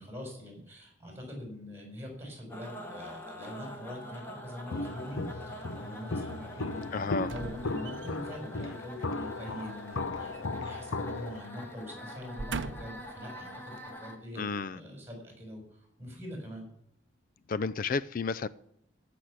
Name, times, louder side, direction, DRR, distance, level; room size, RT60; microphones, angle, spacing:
voice 1, 0.0-13.7 14.0-14.4 14.7-16.7, equal, 10° right, 4.7 m, -43 dB
sound 1, 2.5-14.2, equal, 10° left, 1.8 m, -45 dB
Walk footsteps, 4.7-11.4, left 3 dB, 85° left, 0.8 m, -36 dB
voice 2, 6.9-7.3 14.4-14.8 17.5-18.5, left 4 dB, 45° left, 0.4 m, -31 dB
sound 2, 7.3-8.4 9.9-11.1 11.4-11.6 12.2-13.1 13.8-13.9, right 4 dB, 65° right, 0.6 m, -41 dB
15.0 x 6.1 x 8.0 m
head